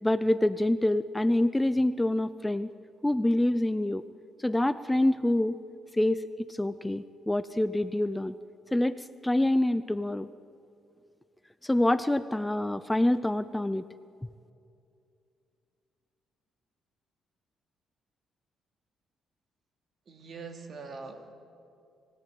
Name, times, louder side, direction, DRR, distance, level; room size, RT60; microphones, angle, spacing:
voice 1, 0.0-2.7 3.0-4.0 4.4-5.6 5.9-6.2 6.5-8.3 8.7-10.3 11.6-13.8, left 1 dB, 10° left, 13 dB, 0.6 m, -26 dB
voice 2, 20.1-21.3, right 4 dB, 50° right, 5 dB, 2.7 m, -43 dB
27.0 x 16.5 x 9.3 m, 2.5 s
cardioid pair, 90°, 0 cm